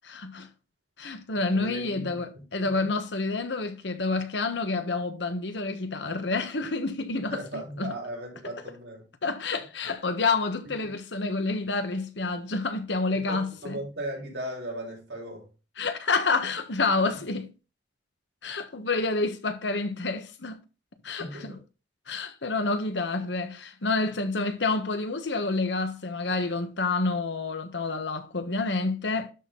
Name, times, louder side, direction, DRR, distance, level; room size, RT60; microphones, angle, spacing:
voice 1, 0.0-0.5 1.0-7.9 9.2-13.7 15.8-17.5 18.4-20.6 21.0-21.5 22.1-29.3, left 3 dB, 75° left, 1.3 m, -28 dB
voice 2, 1.3-2.9 7.3-9.0 9.6-9.7 10.8-10.9 13.1-15.5 17.1-17.2 21.2-21.6, right 1 dB, 75° right, 4.8 m, -38 dB
12.0 x 4.3 x 3.8 m
head